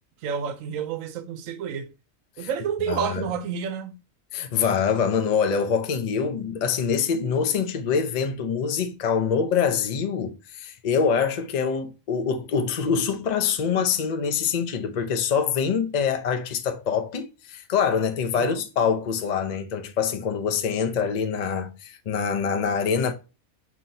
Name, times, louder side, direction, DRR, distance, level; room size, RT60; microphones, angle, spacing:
voice 1, 0.2-1.9 2.4-4.0 18.3-18.6, right 7 dB, 75° right, 1.0 m, -30 dB
voice 2, 2.9-3.3 4.3-23.1, left 6 dB, 55° left, 0.5 m, -25 dB
5.6 x 2.9 x 2.6 m
omnidirectional pair, 1.4 m